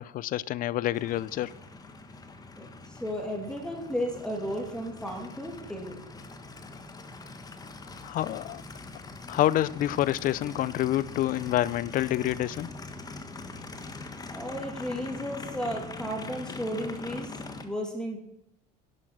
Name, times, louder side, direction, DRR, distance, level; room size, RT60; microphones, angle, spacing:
voice 1, 0.0-1.5 8.0-8.6 9.3-12.8, left 13 dB, 50° left, 0.5 m, -27 dB
Aircraft, 0.9-17.6, left 3 dB, 20° left, 1.4 m, -43 dB
voice 2, 2.6-6.0 14.3-18.2, equal, 5° left, 2.8 m, -34 dB
11.0 x 8.3 x 6.3 m
supercardioid pair, 110°, 18 cm